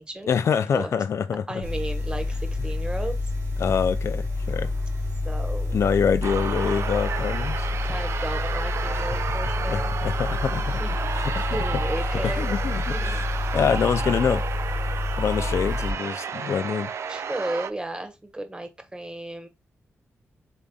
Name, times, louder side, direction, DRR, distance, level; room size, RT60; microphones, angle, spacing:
voice 1, 0.3-1.6 3.6-4.7 5.7-7.7 8.9-9.0 9.3-9.4 9.7-10.8 11.1-11.6 12.2-13.2 13.5-14.4 15.2-16.9, left 7 dB, 65° left, 0.4 m, -25 dB
voice 2, 1.5-3.2 5.2-5.8 6.6-6.7 7.8-10.0 10.6-11.0 11.5-12.5 12.9-13.6 17.1-19.5, right 1 dB, 20° right, 1.2 m, -34 dB
sound 1, 1.6-15.9, left 2 dB, 85° right, 1.9 m, -28 dB
sound 2, 6.2-17.7, right 7 dB, 70° right, 0.4 m, -32 dB
5.3 x 3.5 x 2.3 m
cardioid pair, 80°, 5 cm